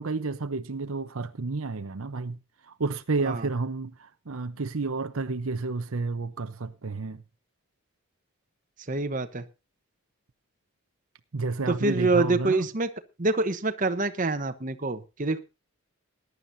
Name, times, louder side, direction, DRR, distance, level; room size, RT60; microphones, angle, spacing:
voice 1, 0.0-2.4 2.7-7.2 11.3-12.7, right 3 dB, 70° right, 0.8 m, -31 dB
voice 2, 8.9-9.5 11.7-12.9 13.2-15.4, right 2 dB, 35° right, 1.0 m, -26 dB
20.5 x 11.0 x 2.7 m
head